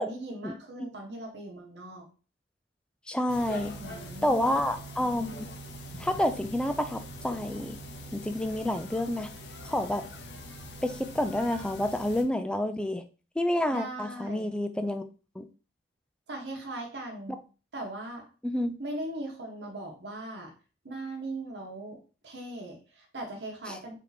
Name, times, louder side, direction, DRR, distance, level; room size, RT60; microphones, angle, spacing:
voice 1, 0.0-2.0 3.7-4.5 13.7-14.5 16.3-17.4 17.7-18.3 18.8-20.5 20.8-22.0 22.2-24.0, right 1 dB, 70° right, 1 dB, 1.1 m, -39 dB
voice 2, 3.1-3.7 4.2-5.5 6.0-7.8 8.1-9.3 9.7-10.0 10.8-13.0 13.4-15.0 15.4-15.5 18.4-18.7, left 1 dB, 5° left, 9 dB, 0.3 m, -29 dB
sound 1, 3.3-12.2, equal, 70° left, 0.7 m, -43 dB
3.5 x 2.7 x 4.0 m, 0.36 s
head